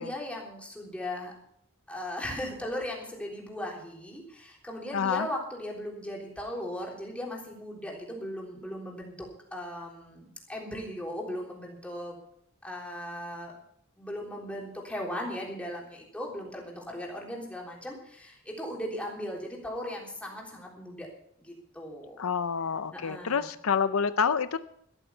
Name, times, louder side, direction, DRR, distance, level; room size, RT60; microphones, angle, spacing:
voice 1, 0.0-1.3 1.9-12.1 12.6-13.5 14.0-21.1 21.4-22.2 22.9-23.5, left 1 dB, 5° left, -2 dB, 3.5 m, -38 dB
voice 2, 4.9-5.3 22.2-24.6, left 6 dB, 85° left, 13 dB, 0.6 m, -28 dB
12.5 x 12.5 x 5.6 m, 0.69 s
head